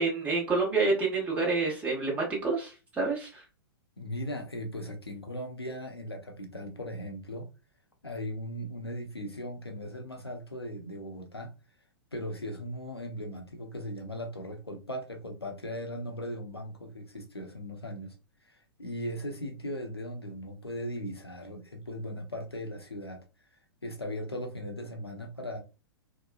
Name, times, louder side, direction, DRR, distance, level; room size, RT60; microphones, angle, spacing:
voice 1, 0.0-3.4, right 3 dB, 10° right, 0.9 m, -28 dB
voice 2, 4.0-7.5 8.0-11.5 12.1-18.1 18.4-23.2 23.8-25.6, equal, 85° left, 0.7 m, -38 dB
2.9 x 2.2 x 2.3 m
figure-of-eight pair, 105°, 13 cm